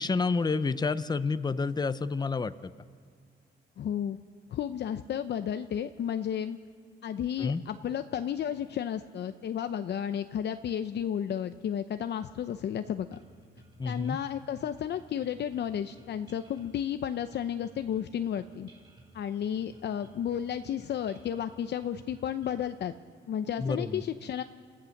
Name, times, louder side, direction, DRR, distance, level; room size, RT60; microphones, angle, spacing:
voice 1, 0.0-2.7 7.4-7.6 13.8-14.2 23.6-24.0, left 4 dB, 20° left, 14 dB, 0.7 m, -29 dB
voice 2, 3.8-4.2 4.5-6.6 7.0-13.2 13.8-18.7 19.1-22.9 23.3-24.4, left 9 dB, 60° left, 9 dB, 0.7 m, -32 dB
sound 1, 13.1-22.7, right 1 dB, 25° right, 5.5 m, -57 dB
28.5 x 15.0 x 6.6 m, 2.1 s
cardioid pair, 90°, 20 cm